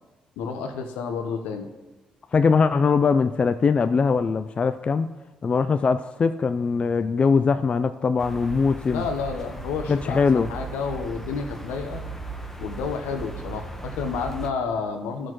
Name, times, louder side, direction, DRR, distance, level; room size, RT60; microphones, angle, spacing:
voice 1, 0.4-1.7 8.9-12.0 12.6-15.3, left 5 dB, 85° left, 0.9 m, -30 dB
voice 2, 2.3-5.1 5.4-9.0 9.9-10.5, left 5 dB, 45° left, 0.4 m, -21 dB
sound 1, 8.2-14.5, right 3 dB, 10° left, 1.2 m, -37 dB
13.5 x 6.3 x 3.1 m
supercardioid pair, 55°, 3 cm